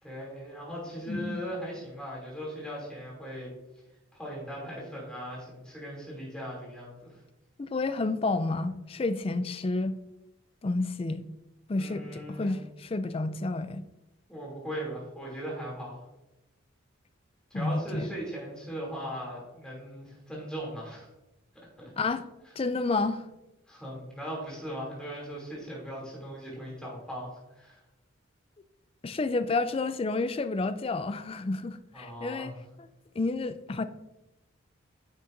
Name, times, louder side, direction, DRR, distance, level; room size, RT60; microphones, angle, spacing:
voice 1, 0.0-3.5 4.1-7.2 11.8-12.5 14.3-16.0 17.5-21.1 21.8-21.9 23.7-27.8 31.9-32.6, equal, 5° left, -4 dB, 2.8 m, -39 dB
voice 2, 1.1-1.4 7.6-9.9 10.6-11.2 11.7-13.8 17.5-18.1 22.0-22.2 22.6-23.3 29.0-32.5 33.2-33.8, left 3 dB, 25° left, 12 dB, 0.3 m, -30 dB
9.8 x 6.4 x 2.6 m, 0.96 s
head